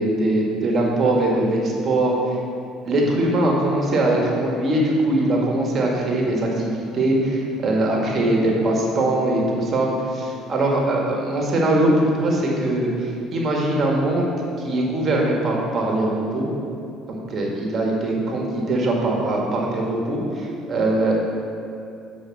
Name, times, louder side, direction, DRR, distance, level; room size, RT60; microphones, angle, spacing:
voice 1, 0.0-2.1 2.8-14.3 14.6-16.5 17.1-21.3, right 1 dB, 45° right, -1 dB, 1.6 m, -21 dB
7.8 x 5.0 x 5.9 m, 2.6 s
hypercardioid pair, 70°, 0 cm